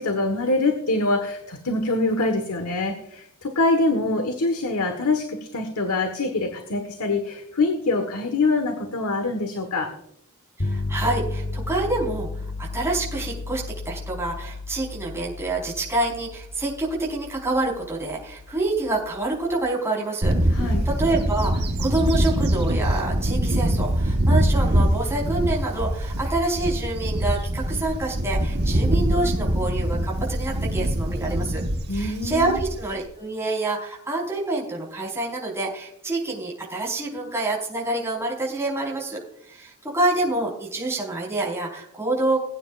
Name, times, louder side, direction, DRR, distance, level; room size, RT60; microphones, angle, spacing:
voice 1, 0.0-9.9 20.5-20.9 31.9-32.6, left 2 dB, 90° left, 5 dB, 1.5 m, -24 dB
sound 1, 10.6-19.6, left 2 dB, 45° left, 1.4 m, -33 dB
voice 2, 10.6-31.6 31.9-39.2 39.5-42.4, right 2 dB, 10° right, -3 dB, 4.6 m, -27 dB
Bird / Wind, 20.2-33.0, right 1 dB, 50° right, 1.4 m, -23 dB
21.0 x 9.4 x 2.5 m, 0.74 s
head